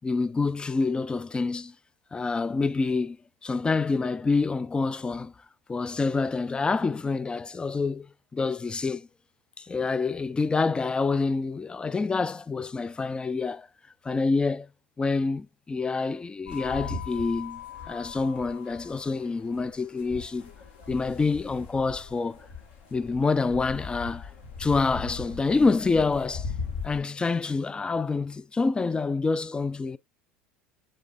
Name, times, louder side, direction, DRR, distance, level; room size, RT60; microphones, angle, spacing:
voice 1, 0.0-1.7 2.1-3.2 3.4-5.3 5.7-8.1 8.3-9.1 9.6-13.7 14.0-14.7 15.0-20.5 20.9-22.5 22.9-24.3 24.6-26.5 26.8-30.0, left 4 dB, 15° left, 0.3 m, -27 dB
sound 1, 16.5-27.0, left 5 dB, 60° left, 1.6 m, -39 dB
7.1 x 3.3 x 2.3 m
figure-of-eight pair, 75°, 7 cm